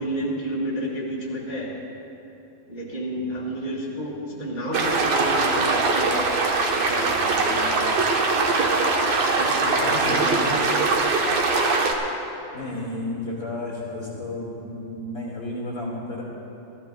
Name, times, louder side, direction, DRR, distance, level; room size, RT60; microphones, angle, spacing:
voice 1, 0.0-1.7 2.7-6.3 6.7-7.9 9.2-10.7, equal, 20° right, -5 dB, 1.5 m, -31 dB
sound 1, 4.7-11.9, right 3 dB, 60° right, 2.0 m, -22 dB
voice 2, 5.3-5.8 9.8-10.2 10.5-10.6 12.5-16.2, left 1 dB, 40° left, -5 dB, 2.1 m, -33 dB
29.5 x 14.0 x 2.3 m, 3.0 s
omnidirectional pair, 4.1 m